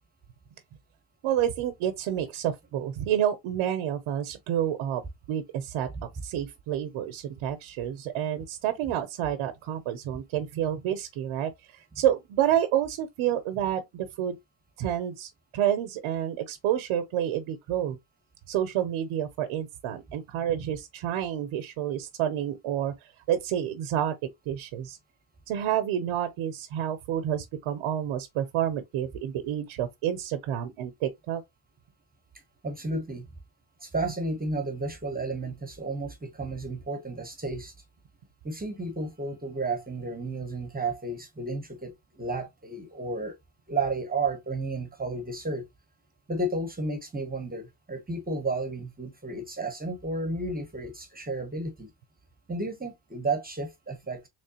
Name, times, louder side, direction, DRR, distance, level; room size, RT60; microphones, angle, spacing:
voice 1, 1.2-5.0 5.3-5.9 6.2-11.5 12.0-14.4 14.8-18.0 18.5-22.9 23.3-24.2 24.5-25.0 25.5-31.4, right 10 dB, 90° right, 0.7 m, -29 dB
voice 2, 32.6-33.2 33.8-37.7 38.4-43.3 43.7-45.6 46.3-51.9 52.5-54.3, right 2 dB, 20° right, 0.9 m, -32 dB
3.6 x 3.2 x 2.8 m
cardioid pair, 100°, 48 cm